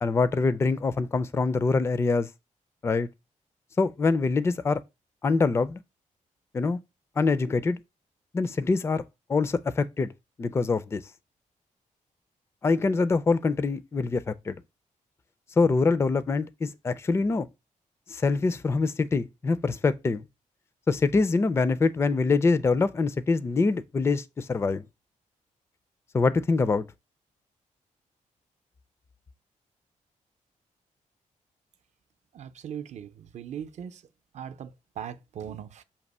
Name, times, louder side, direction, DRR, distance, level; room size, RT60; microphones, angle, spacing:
voice 1, 0.0-2.3 2.8-3.1 3.8-4.8 5.2-5.8 6.5-6.8 7.2-7.8 8.3-9.0 9.3-10.1 10.4-11.0 12.6-14.6 15.6-17.5 18.1-20.2 20.9-24.8 26.1-26.9, left 4 dB, 20° left, 0.4 m, -24 dB
voice 2, 32.3-34.0 34.3-35.8, right 9 dB, 60° right, 0.6 m, -39 dB
7.0 x 2.8 x 5.3 m
wide cardioid pair, 170°, 13 cm